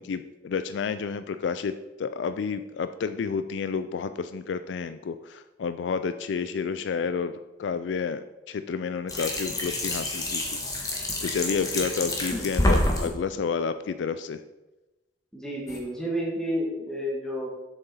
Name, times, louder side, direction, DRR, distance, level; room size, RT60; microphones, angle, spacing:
voice 1, 0.0-1.7 2.0-14.4, left 5 dB, 75° left, 11 dB, 0.4 m, -30 dB
sound 1, 9.1-13.1 15.7-15.8, left 1 dB, 20° left, 1.3 m, -27 dB
voice 2, 15.3-17.5, equal, 5° left, -3 dB, 1.7 m, -30 dB
7.4 x 6.8 x 4.2 m, 1.1 s
head